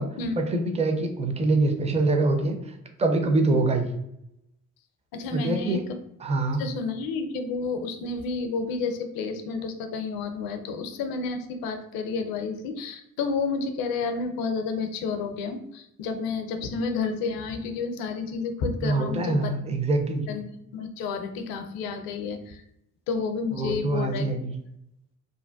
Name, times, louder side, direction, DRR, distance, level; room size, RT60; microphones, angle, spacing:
voice 1, 0.4-3.9 5.3-5.8 6.2-6.6 18.8-20.3 23.5-24.5, right 2 dB, 15° right, 5 dB, 0.4 m, -25 dB
voice 2, 5.1-5.8 6.6-19.5 20.3-22.6 23.1-24.3, left 4 dB, 55° left, 7 dB, 0.5 m, -30 dB
2.5 x 2.2 x 2.2 m, 0.78 s
figure-of-eight pair, 40°, 43 cm